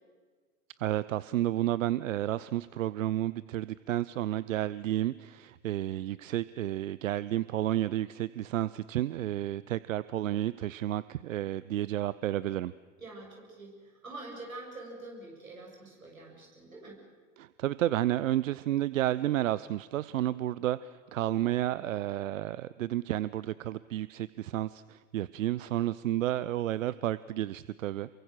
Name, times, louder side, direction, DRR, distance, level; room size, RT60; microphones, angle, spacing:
voice 1, 0.8-12.7 17.4-28.1, right 13 dB, 70° right, 18 dB, 0.7 m, -31 dB
voice 2, 13.0-17.0, right 2 dB, 90° right, -2 dB, 7.6 m, -46 dB
28.0 x 23.5 x 6.5 m, 1.5 s
figure-of-eight pair, 85°, 40 cm